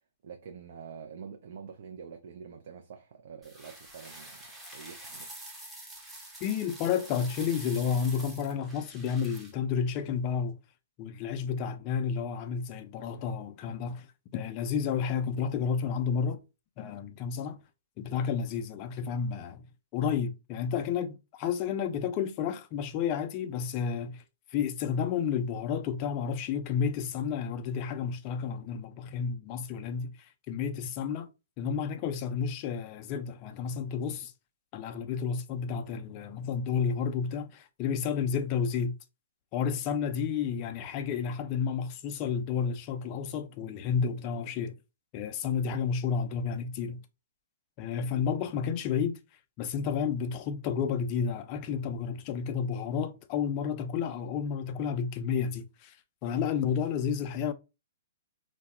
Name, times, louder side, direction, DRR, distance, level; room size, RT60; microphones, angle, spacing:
voice 1, 0.2-5.4, right 6 dB, 55° right, 0.4 m, -46 dB
sound 1, 3.4-9.5, right 1 dB, 5° right, 0.6 m, -46 dB
voice 2, 6.4-10.6 11.0-14.1 14.3-16.4 16.8-17.6 18.0-19.7 19.9-24.2 24.5-31.3 31.6-34.3 34.7-38.9 39.5-44.8 45.1-47.0 47.8-49.2 49.6-56.0 56.2-57.5, left 7 dB, 35° left, 0.3 m, -31 dB
2.1 x 2.0 x 2.9 m
figure-of-eight pair, 120°, 0 cm